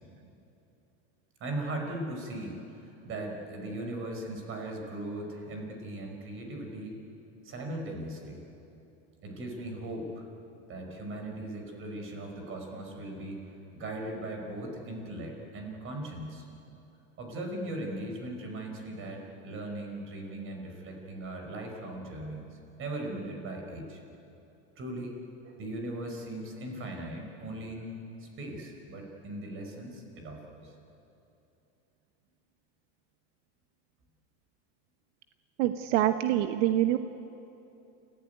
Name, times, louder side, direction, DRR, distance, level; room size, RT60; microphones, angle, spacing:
voice 1, 1.4-7.0 7.4-8.4 9.2-10.3 10.7-13.4 13.8-16.5 17.2-24.0 24.8-25.1 25.4-30.7, right 1 dB, 35° right, 2 dB, 5.4 m, -38 dB
voice 2, 35.6-37.0, right 13 dB, 85° right, 8 dB, 1.1 m, -25 dB
29.0 x 16.0 x 9.5 m, 2.8 s
supercardioid pair, 150°, 36 cm